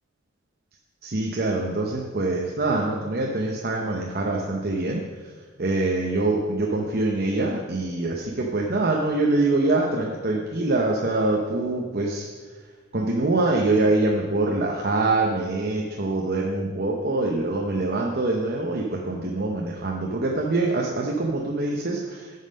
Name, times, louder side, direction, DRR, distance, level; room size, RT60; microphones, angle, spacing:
voice 1, 1.0-5.0 5.6-12.3 12.9-22.4, right 2 dB, 45° right, -1 dB, 0.8 m, -24 dB
9.3 x 5.6 x 6.4 m, 1.5 s
head